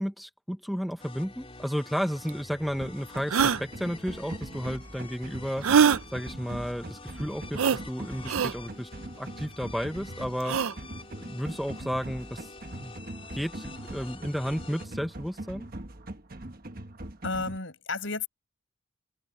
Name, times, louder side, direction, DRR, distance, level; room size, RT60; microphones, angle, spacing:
voice 1, 0.0-8.9 9.2-10.6 11.2-12.9 13.3-15.7, equal, ahead, 0.9 m, -33 dB
sound 1, 1.0-14.9, left 3 dB, 25° left, 4.1 m, -47 dB
sound 2, 2.3-2.4 3.3-3.6 5.6-6.0 7.6-7.8 8.3-8.5 10.4-10.7, right 7 dB, 85° right, 0.6 m, -22 dB
sound 3, 2.8-17.6, right 1 dB, 45° right, 1.3 m, -42 dB
voice 2, 17.2-18.3, left 3 dB, 65° left, 6.9 m, -32 dB
open air
head